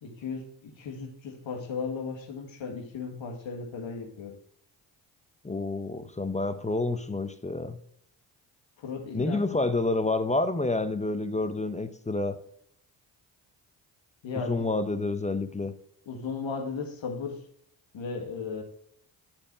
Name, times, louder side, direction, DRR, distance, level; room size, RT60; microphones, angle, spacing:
voice 1, 0.0-4.4 8.8-9.6 14.2-14.7 16.1-17.4 17.9-18.6, left 5 dB, 65° left, 4 dB, 1.8 m, -36 dB
voice 2, 5.4-7.8 9.1-12.4 14.5-15.7, left 2 dB, 15° left, 11 dB, 0.7 m, -28 dB
8.8 x 4.4 x 4.6 m, 0.68 s
supercardioid pair, 50°, 49 cm